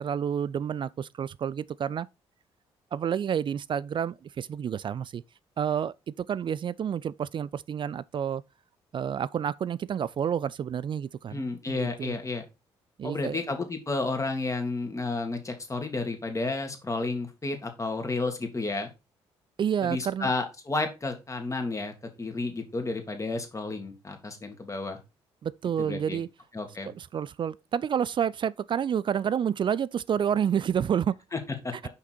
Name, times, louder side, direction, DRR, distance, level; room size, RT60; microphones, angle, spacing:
voice 1, 0.0-2.1 2.9-5.2 5.6-8.4 8.9-12.2 13.0-13.4 19.6-20.3 25.4-26.3 26.9-31.2, right 8 dB, 35° right, 0.4 m, -29 dB
voice 2, 11.3-12.4 13.0-18.9 19.8-21.9 22.2-25.0 25.8-26.2 26.5-26.9 31.3-31.7, left 3 dB, 20° left, 2.1 m, -31 dB
5.9 x 5.8 x 4.3 m
figure-of-eight pair, 45°, 14 cm